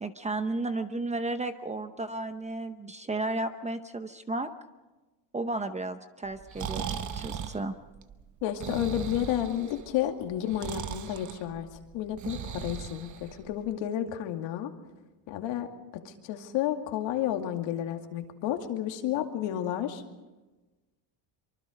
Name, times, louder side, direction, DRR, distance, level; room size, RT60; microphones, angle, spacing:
voice 1, 0.0-4.5 5.3-6.8 7.1-7.7, right 2 dB, 15° right, 9 dB, 0.8 m, -33 dB
Breathing, 6.3-13.7, right 8 dB, 40° right, 1.2 m, -38 dB
voice 2, 8.4-11.7 11.9-14.7 15.3-20.0, left 11 dB, 65° left, 5 dB, 2.4 m, -31 dB
24.5 x 24.5 x 5.2 m, 1.2 s
cardioid pair, 135°, 47 cm